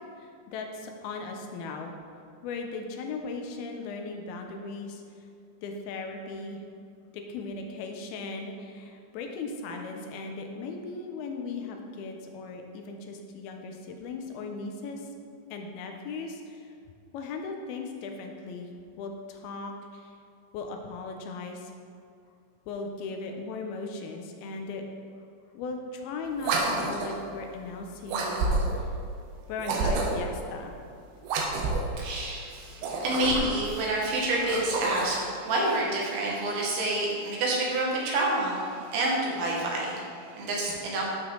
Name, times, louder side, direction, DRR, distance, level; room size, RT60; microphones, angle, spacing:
voice 1, 0.2-2.0 2.4-5.0 5.6-6.6 7.1-15.1 15.5-16.7 17.1-20.2 20.5-21.7 22.7-24.8 25.5-28.9 29.5-30.8, left 3 dB, 80° left, 3 dB, 2.6 m, -37 dB
sound 1, 26.4-27.2 28.1-28.9 29.6-30.3 31.2-32.0 32.7-33.7 34.3-35.2, right 3 dB, 85° right, 3.0 m, -29 dB
voice 2, 32.0-41.0, right 2 dB, 70° right, -3 dB, 3.2 m, -28 dB
12.0 x 5.3 x 3.9 m, 2.4 s
omnidirectional pair, 4.6 m